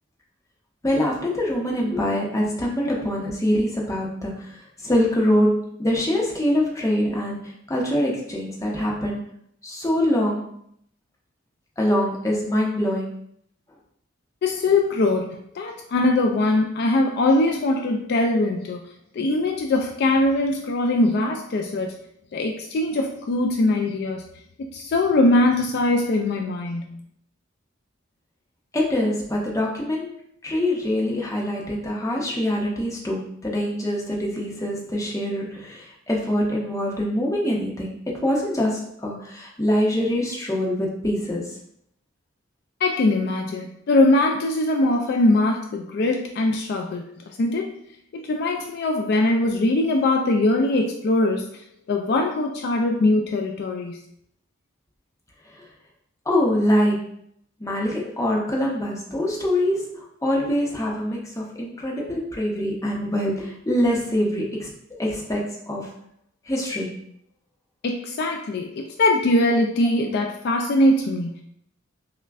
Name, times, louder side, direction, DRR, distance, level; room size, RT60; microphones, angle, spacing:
voice 1, 0.8-9.3 9.6-10.5 11.8-13.2 28.7-30.1 30.4-38.0 38.2-41.6 55.5-55.7 56.3-57.1 57.6-66.0 66.5-67.0, left 1 dB, 15° left, -2 dB, 0.7 m, -24 dB
voice 2, 14.4-18.9 19.2-21.9 22.3-24.2 24.6-27.0 42.8-47.1 47.4-47.7 48.1-51.5 51.9-54.0 67.8-71.4, left 2 dB, 55° left, 2 dB, 0.3 m, -21 dB
5.7 x 2.1 x 2.4 m, 0.69 s
head